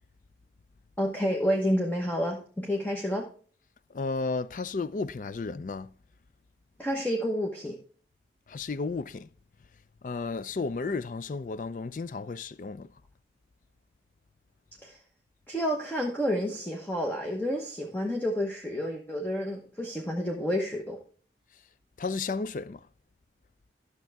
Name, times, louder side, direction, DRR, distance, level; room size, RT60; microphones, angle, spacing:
voice 1, 1.0-3.3 6.8-7.8 14.8-15.0 15.5-21.0, equal, 10° left, 1.0 m, -29 dB
voice 2, 3.9-5.9 8.5-9.3 10.0-12.9 22.0-22.8, left 4 dB, 45° left, 0.4 m, -33 dB
12.0 x 6.7 x 3.4 m
head